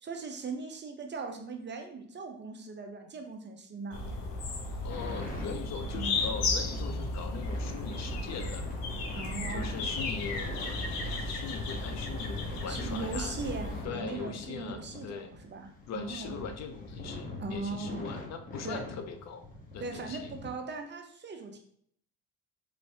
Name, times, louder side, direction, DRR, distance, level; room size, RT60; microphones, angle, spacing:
voice 1, 0.0-4.0 5.9-6.2 9.1-9.8 12.7-16.3 17.4-18.1 18.6-18.9 19.8-21.6, right 4 dB, 30° right, 4 dB, 0.6 m, -39 dB
sound 1, 3.9-13.8, left 3 dB, 80° left, 0.8 m, -34 dB
voice 2, 4.8-8.6 9.5-13.3 13.8-15.3 15.9-19.5 19.7-20.3, left 6 dB, 50° left, 7 dB, 0.5 m, -41 dB
sound 2, 4.9-20.5, left 2 dB, 25° left, 1.1 m, -43 dB
3.1 x 3.1 x 2.7 m, 0.65 s
supercardioid pair, 80°, 35 cm